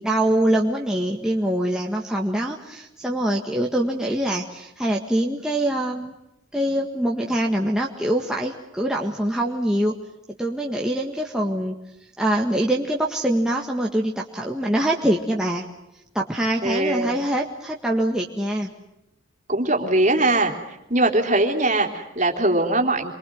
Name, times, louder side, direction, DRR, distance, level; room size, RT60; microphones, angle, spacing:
voice 1, 0.0-6.1 6.5-9.9 10.4-11.7 12.2-15.7 16.2-18.7, right 1 dB, 5° right, -1 dB, 1.7 m, -24 dB
voice 2, 16.6-17.2 19.5-20.5 20.9-23.1, right 2 dB, 35° right, 2 dB, 3.6 m, -21 dB
28.0 x 23.5 x 7.8 m, 0.90 s
head